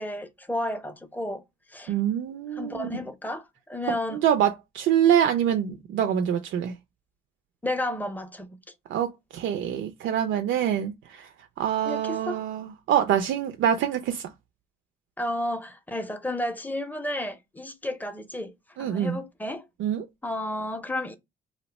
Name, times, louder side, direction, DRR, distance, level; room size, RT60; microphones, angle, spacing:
voice 1, 0.0-1.4 1.7-1.9 2.5-4.2 7.6-8.6 11.8-12.4 15.2-18.5 18.8-19.7 20.2-21.2, left 1 dB, 10° left, 0.5 m, -32 dB
voice 2, 1.9-2.9 4.2-6.7 8.9-11.3 11.6-14.2 18.8-19.2 19.8-20.0, right 10 dB, 75° right, 0.4 m, -25 dB
2.7 x 2.1 x 4.0 m
cardioid pair, 90°, 20 cm